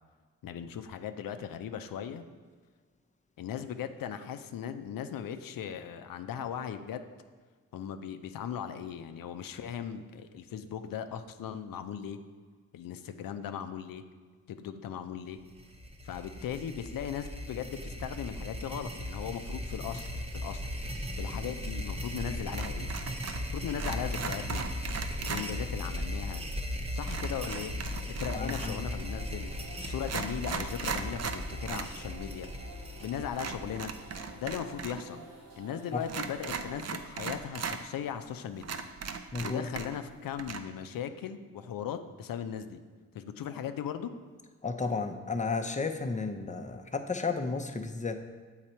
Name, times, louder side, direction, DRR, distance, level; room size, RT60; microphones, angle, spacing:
voice 1, 0.4-2.2 3.4-7.0 7.7-12.2 12.7-14.0 14.5-15.4 16.0-20.6 21.2-22.9 23.5-24.7 25.2-26.5 26.9-27.7 28.2-29.5 29.8-32.5 33.0-33.9 34.4-35.3 35.6-38.8 39.4-42.8 43.1-44.1, left 8 dB, 70° left, 9 dB, 0.6 m, -38 dB
sound 1, 15.5-34.5, left 1 dB, 15° right, 0.9 m, -38 dB
sound 2, 22.5-23.5 23.7-25.5 27.1-28.8 29.5-29.6 30.0-31.9 32.2-32.3 33.3-35.0 35.3-35.4 36.0-37.8 38.2-38.3 38.6-40.1 40.4-40.6, right 6 dB, 45° right, 0.6 m, -37 dB
voice 2, 28.3-28.9 35.9-36.0 39.3-39.7 44.6-48.1, left 4 dB, 20° left, 7 dB, 0.6 m, -33 dB
sound 3, 28.9-36.8, right 2 dB, 80° right, 1.2 m, -51 dB
7.4 x 4.0 x 4.4 m, 1.5 s
cardioid pair, 65°, 35 cm